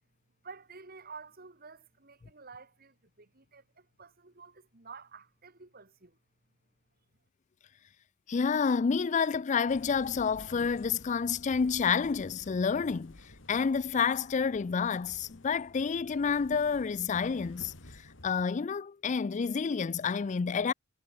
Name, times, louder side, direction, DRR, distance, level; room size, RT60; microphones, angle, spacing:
voice 1, 0.4-6.2, right 4 dB, 50° right, 2.4 m, -50 dB
voice 2, 8.3-13.2 13.5-20.7, left 5 dB, 40° left, 0.4 m, -29 dB
sound 1, 9.7-18.4, left 1 dB, 70° left, 3.2 m, -52 dB
head